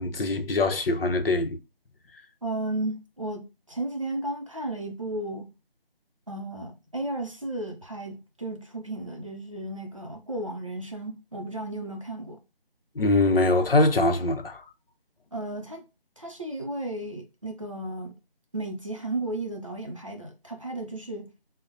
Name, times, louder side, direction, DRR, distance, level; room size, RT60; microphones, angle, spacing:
voice 1, 0.0-1.6 13.0-14.6, left 2 dB, 70° left, 0.7 m, -23 dB
voice 2, 2.4-5.5 6.3-12.4 15.3-15.8 16.2-18.2 18.5-21.3, right 2 dB, 35° right, 0.5 m, -34 dB
5.2 x 2.0 x 2.7 m
figure-of-eight pair, 160°, 30 cm